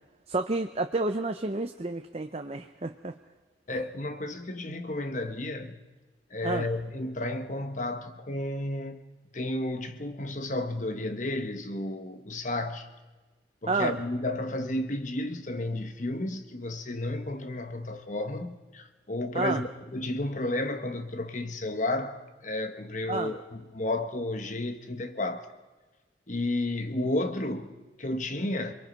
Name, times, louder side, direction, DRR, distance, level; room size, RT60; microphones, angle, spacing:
voice 1, 0.3-3.1 6.4-6.7 13.7-13.9 19.3-19.6 23.1-23.3, right 2 dB, 30° right, 0.7 m, -30 dB
voice 2, 3.7-5.8 6.3-9.0 9.3-12.9 13.6-25.5 26.3-28.7, left 1 dB, 40° left, 1.3 m, -32 dB
27.5 x 22.0 x 5.3 m
head